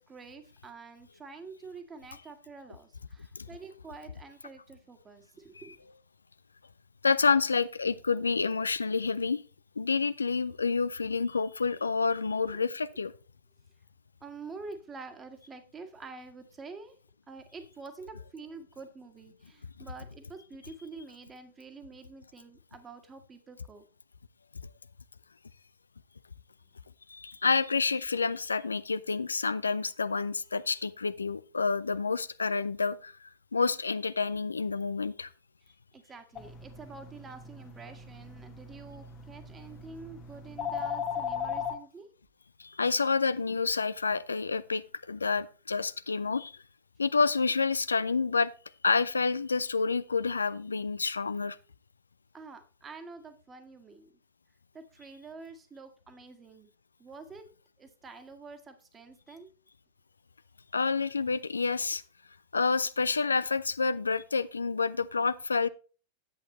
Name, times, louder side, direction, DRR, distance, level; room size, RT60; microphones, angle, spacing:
voice 1, 0.0-5.8 14.2-16.9 17.3-23.8 35.7-42.1 52.3-54.1 54.7-56.7 57.0-57.5 57.8-59.5, right 4 dB, 20° right, 1.6 m, -47 dB
voice 2, 7.0-9.4 9.8-13.1 27.1-35.3 42.6-46.6 47.0-48.5 48.8-51.6 60.7-62.0 62.5-65.7, left 4 dB, 75° left, 0.5 m, -28 dB
Ringing Phone, 36.4-41.8, left 7 dB, 25° left, 1.2 m, -38 dB
10.5 x 8.2 x 3.1 m
figure-of-eight pair, 90°, 0 cm